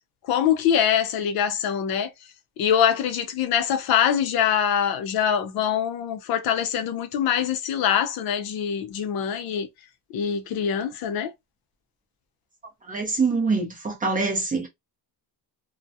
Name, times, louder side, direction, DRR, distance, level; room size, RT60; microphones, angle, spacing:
voice 1, 0.3-2.1 2.6-9.7 10.1-11.3, left 9 dB, 60° left, 0.5 m, -24 dB
voice 2, 12.9-14.7, right 4 dB, 20° right, 0.5 m, -24 dB
2.3 x 2.1 x 2.6 m
cardioid pair, 170°, 42 cm